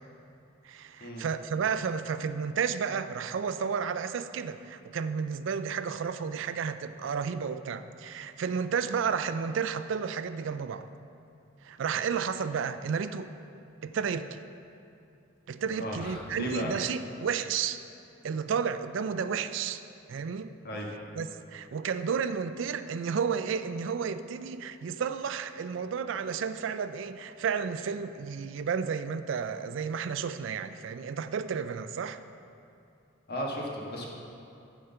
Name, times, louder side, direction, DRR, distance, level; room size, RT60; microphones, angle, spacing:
voice 1, 0.6-10.9 11.6-13.3 13.8-14.4 15.5-17.8 18.2-19.8 20.1-20.5 21.2-32.2, right 6 dB, 65° right, 12 dB, 0.4 m, -32 dB
voice 2, 15.7-16.7 20.6-20.9 33.3-34.1, equal, 50° left, -2 dB, 1.5 m, -35 dB
10.0 x 5.0 x 6.8 m, 2.7 s
head